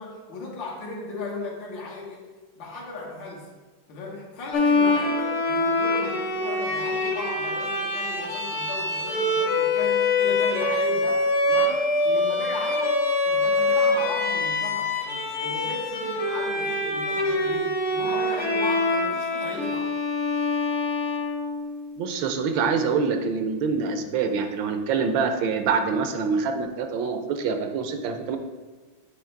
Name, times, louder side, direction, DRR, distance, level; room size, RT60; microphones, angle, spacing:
voice 1, 0.0-2.3 2.6-3.5 3.9-13.0 13.3-19.9, left 3 dB, 70° left, -3 dB, 2.0 m, -36 dB
Bowed string instrument, 4.5-21.9, left 2 dB, 50° left, 0.9 m, -25 dB
voice 2, 22.0-28.4, right 5 dB, 75° right, 6 dB, 1.3 m, -25 dB
8.4 x 3.1 x 4.4 m, 1.3 s
omnidirectional pair, 2.2 m